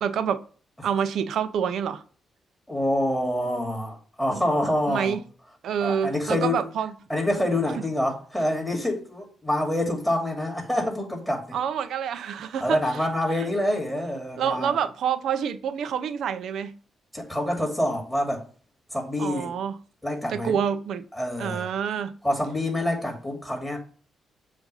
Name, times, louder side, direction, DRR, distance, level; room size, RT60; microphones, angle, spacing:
voice 1, 0.0-0.4 0.8-2.0 4.9-5.2 5.6-6.9 11.5-13.0 13.4-13.5 14.4-16.7 19.2-19.8 20.3-21.0 21.4-22.1, right 8 dB, 75° right, 0.5 m, -27 dB
voice 2, 2.7-5.2 5.8-6.6 7.1-11.6 12.6-14.8 17.1-18.4 18.9-19.5 20.0-20.6 21.1-21.7 22.2-23.8, left 1 dB, 5° left, 2.6 m, -26 dB
7.2 x 2.6 x 5.4 m
supercardioid pair, 60°, 0 cm